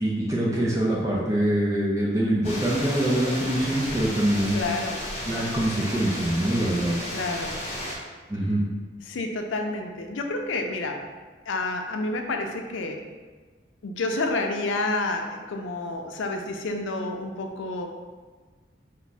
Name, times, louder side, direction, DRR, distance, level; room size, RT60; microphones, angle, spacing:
voice 1, 0.0-4.6 5.3-7.2 8.3-8.6, right 1 dB, 15° right, -5 dB, 0.4 m, -24 dB
sound 1, 2.4-8.0, left 1 dB, 35° left, 0.8 m, -33 dB
voice 2, 4.5-5.0 7.1-7.6 9.1-11.0 11.5-13.0 13.8-17.9, left 2 dB, 85° left, 3 dB, 0.5 m, -29 dB
4.5 x 2.1 x 4.0 m, 1.4 s
head